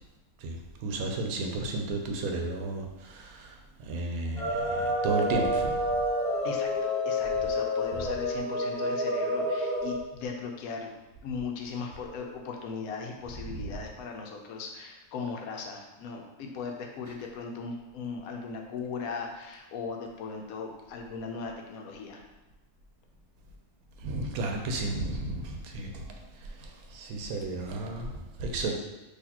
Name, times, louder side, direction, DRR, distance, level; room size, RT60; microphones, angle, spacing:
voice 1, 0.4-3.5 3.8-5.8 13.5-13.8 24.0-26.0 26.9-28.1 28.4-28.7, right 2 dB, 80° right, 2 dB, 1.1 m, -33 dB
sound 1, 4.3-10.0, left 1 dB, 35° left, 1.7 m, -29 dB
voice 2, 6.4-10.9 11.2-22.2, left 5 dB, 80° left, 2 dB, 1.0 m, -38 dB
4.0 x 2.8 x 2.8 m, 1.0 s
omnidirectional pair, 1.5 m